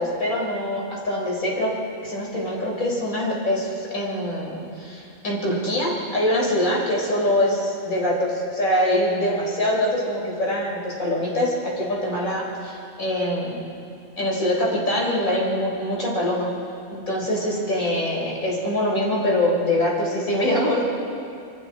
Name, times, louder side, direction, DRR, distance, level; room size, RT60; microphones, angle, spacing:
voice 1, 0.0-1.7 2.0-13.5 14.2-16.5 16.9-20.8, left 1 dB, 75° left, -3 dB, 4.9 m, -24 dB
26.0 x 25.0 x 4.3 m, 2.5 s
omnidirectional pair, 1.4 m